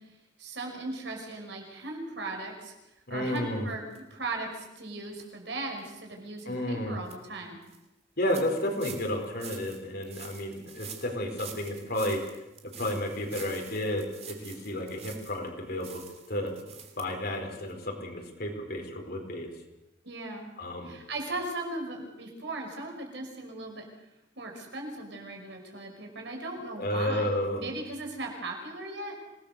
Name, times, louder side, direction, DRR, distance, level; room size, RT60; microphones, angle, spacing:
voice 1, 0.4-2.7 3.1-7.6 20.0-20.5 20.8-23.9 24.4-27.3 27.6-29.2, right 2 dB, 65° right, 2 dB, 5.5 m, -38 dB
voice 2, 3.1-3.7 6.4-7.0 8.2-12.2 12.8-16.0 16.3-19.5 20.6-20.9 26.8-27.6, left 1 dB, 55° left, 3 dB, 4.6 m, -32 dB
sound 1, 3.3-3.4 3.9-4.0 4.5-4.6 5.1-5.2 5.8-5.9 6.4-6.5 6.8-7.1 7.6-7.8 8.3-15.5 15.8-17.0 17.3-17.4 17.7-17.8, right 8 dB, 35° right, 2.9 m, -47 dB
26.5 x 19.0 x 6.8 m, 0.95 s
head